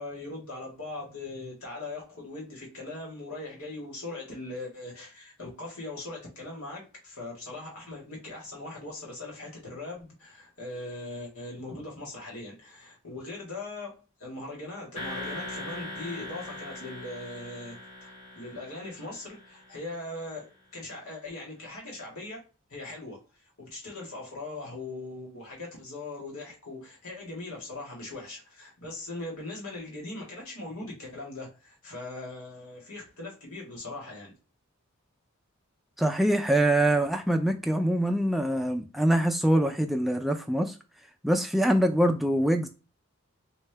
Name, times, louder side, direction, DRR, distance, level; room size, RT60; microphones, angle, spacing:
voice 1, 0.0-13.9 14.2-22.4 22.7-23.2 23.6-34.3, left 2 dB, 80° left, 1.8 m, -40 dB
sound 1, 14.9-19.9, left 1 dB, 30° left, 1.6 m, -41 dB
voice 2, 36.0-40.8 41.2-42.7, right 1 dB, ahead, 0.3 m, -24 dB
3.3 x 2.6 x 3.3 m
head